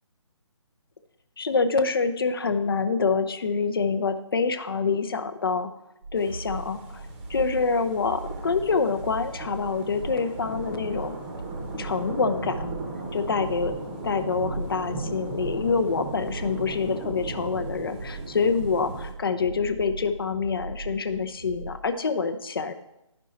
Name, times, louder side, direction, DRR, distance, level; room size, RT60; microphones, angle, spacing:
voice 1, 1.4-5.7 6.1-11.1 11.8-12.7 13.1-13.7 14.0-22.7, left 4 dB, 45° left, 9 dB, 0.7 m, -26 dB
sound 1, 6.0-21.9, right 2 dB, 45° right, 0.7 m, -39 dB
sound 2, 6.2-19.1, right 2 dB, 20° right, 0.9 m, -37 dB
11.0 x 5.4 x 4.1 m, 0.88 s
figure-of-eight pair, 145°, 16 cm